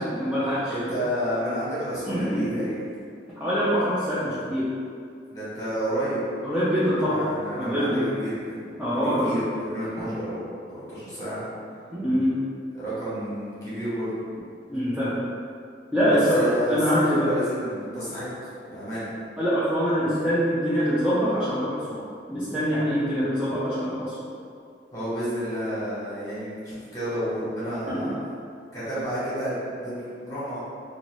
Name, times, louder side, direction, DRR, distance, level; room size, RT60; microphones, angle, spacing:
voice 1, 0.0-0.7 2.1-2.6 3.4-4.8 6.4-7.3 7.6-8.1 8.8-9.4 11.9-12.4 14.7-15.2 15.9-17.3 19.4-22.0 22.3-24.1 27.9-28.1, equal, 5° right, -13 dB, 0.4 m, -24 dB
voice 2, 0.7-2.8 5.3-6.3 7.1-8.6 8.9-10.4 10.7-11.4 12.7-14.2 16.1-19.1 24.9-28.1 28.7-29.9 30.2-30.6, equal, 20° left, -11 dB, 1.3 m, -30 dB
2.8 x 2.6 x 3.0 m, 2.3 s
head